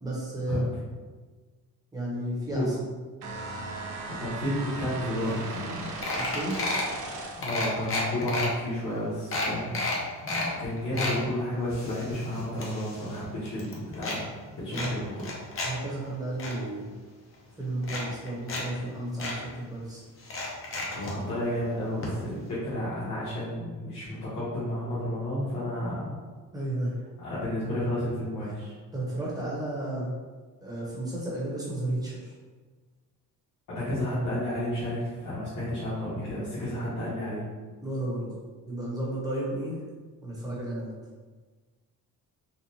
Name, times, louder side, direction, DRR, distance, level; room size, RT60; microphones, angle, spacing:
voice 1, 0.0-0.6 1.9-2.7 6.1-6.7 10.9-11.0 14.7-14.9 15.6-16.9 17.6-20.0 26.5-26.9 28.4-28.5 28.9-30.2 30.6-32.3 37.8-38.4 38.6-39.8 40.2-40.9, right 1 dB, 10° right, -6 dB, 0.9 m, -33 dB
sound 1, 3.2-7.6, right 3 dB, 60° right, 0.7 m, -37 dB
voice 2, 3.8-5.9 7.4-9.8 10.2-15.2 20.9-26.1 27.2-28.7 33.7-37.5, left 1 dB, 55° left, -12 dB, 1.3 m, -32 dB
sound 2, 5.3-5.4 5.6-5.8 6.0-6.9 7.4-8.5 8.9-9.0 9.3-10.5 10.8-11.2 11.7-13.2 13.5-14.2 14.7-15.7 16.0-16.5 17.3-17.4 17.8-18.6 18.9-19.0 19.2-19.4 20.2-21.1 22.0-22.1 22.4-22.5, left 2 dB, 35° left, 0.8 m, -32 dB
4.1 x 2.4 x 2.8 m, 1.4 s
cardioid pair, 155°, 36 cm